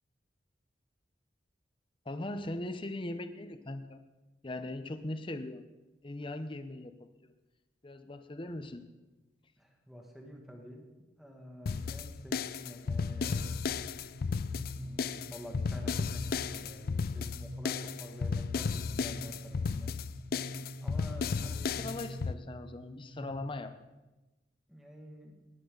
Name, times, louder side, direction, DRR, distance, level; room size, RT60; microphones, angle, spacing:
voice 1, 2.1-4.0 4.4-5.7 6.0-7.3 7.8-8.8 12.3-12.4 21.4-23.7, left 1 dB, 30° left, 9 dB, 0.8 m, -40 dB
voice 2, 9.6-10.9 11.2-13.4 14.7-19.9 20.8-21.8 24.7-25.4, equal, ahead, 0 dB, 2.1 m, -49 dB
sound 1, 11.7-22.3, left 5 dB, 55° left, 0.4 m, -34 dB
sound 2, 13.2-23.3, equal, 85° right, 6.0 m, -47 dB
19.0 x 11.5 x 3.9 m, 1.1 s
head